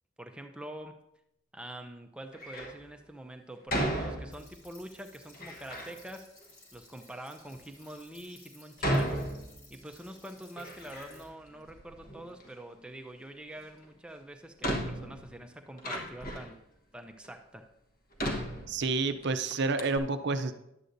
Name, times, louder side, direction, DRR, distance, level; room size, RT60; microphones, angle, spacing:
voice 1, 0.2-1.0 1.5-6.3 6.7-9.2 9.7-16.6 16.9-17.7, right 1 dB, 5° right, 5 dB, 0.5 m, -45 dB
Door, 2.3-2.8 3.7-4.7 5.3-6.0 6.7-6.8 7.5-7.6 8.8-9.9 10.3-11.4 11.6-12.5 13.8-13.9 14.6-16.6 17.2-17.3 18.2-19.2 19.5-19.6 19.8-20.0, equal, 45° left, 1.1 m, -34 dB
sound 1, 4.3-11.2, left 2 dB, 85° left, 2.7 m, -57 dB
voice 2, 18.7-20.5, right 3 dB, 55° right, 9 dB, 0.5 m, -29 dB
11.5 x 8.1 x 2.6 m, 0.84 s
head